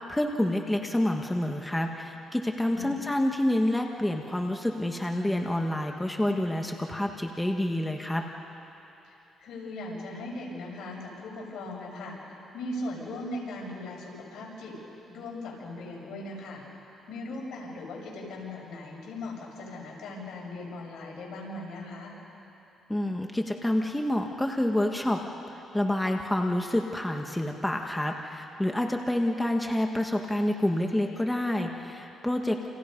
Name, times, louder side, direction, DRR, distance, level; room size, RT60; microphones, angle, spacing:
voice 1, 0.0-8.2 22.9-25.2 25.5-32.7, left 1 dB, 10° left, 2 dB, 1.7 m, -28 dB
voice 2, 2.7-3.0 9.0-12.2 12.5-14.8 15.1-16.6 17.1-22.1, left 2 dB, 75° left, -2 dB, 6.9 m, -39 dB
29.5 x 28.5 x 5.4 m, 3.0 s
cardioid pair, 90°, 0 cm